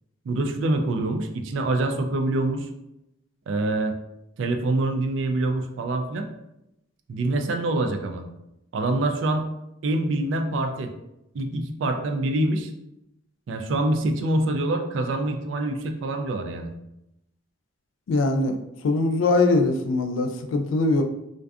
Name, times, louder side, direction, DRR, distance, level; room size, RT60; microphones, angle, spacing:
voice 1, 0.3-2.7 3.5-3.9 4.4-6.3 7.1-8.2 8.7-9.5 9.8-10.9 11.3-12.7 13.5-16.7, right 2 dB, 65° right, 6 dB, 0.3 m, -25 dB
voice 2, 18.1-18.6 18.8-21.0, left 2 dB, 75° left, 5 dB, 0.3 m, -22 dB
2.5 x 2.3 x 2.3 m, 0.86 s
head